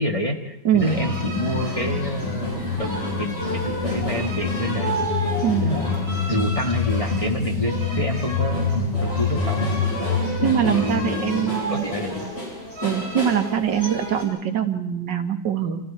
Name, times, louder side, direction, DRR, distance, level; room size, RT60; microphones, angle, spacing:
voice 1, 0.0-4.9 5.6-5.9 6.3-9.7 10.7-12.3, equal, 20° left, 1 dB, 1.7 m, -27 dB
sound 1, 0.8-14.2, left 3 dB, 40° left, 8.4 m, -26 dB
voice 2, 10.4-11.8 12.8-15.8, right 9 dB, 80° right, 7 dB, 2.0 m, -23 dB
29.5 x 27.5 x 4.3 m, 0.90 s
omnidirectional pair, 1.9 m